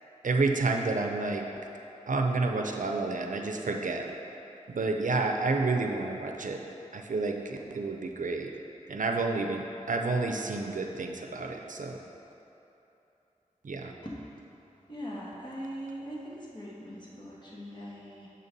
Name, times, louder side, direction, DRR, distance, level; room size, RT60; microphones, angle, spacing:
voice 1, 0.2-1.4 2.1-4.0 4.7-6.6 6.9-8.5 8.9-12.0 13.6-13.9, right 3 dB, 75° right, 3 dB, 0.5 m, -30 dB
voice 2, 14.9-18.3, equal, 35° left, -6 dB, 1.5 m, -41 dB
6.5 x 4.0 x 5.3 m, 3.0 s
wide cardioid pair, 50°, 13 cm